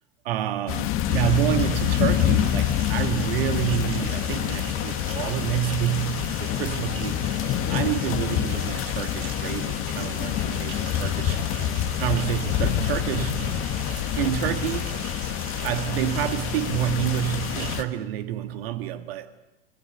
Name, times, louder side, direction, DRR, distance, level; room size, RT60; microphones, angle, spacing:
voice 1, 0.2-7.2 7.7-11.4 12.0-13.6 14.2-15.1 15.6-19.4, right 12 dB, 70° right, 2.0 m, -28 dB
sound 1, 0.7-17.8, left 11 dB, 40° left, 1.6 m, -27 dB
sound 2, 1.1-17.8, right 10 dB, 45° right, 2.2 m, -41 dB
28.0 x 19.5 x 7.9 m
hypercardioid pair, 100°, 31 cm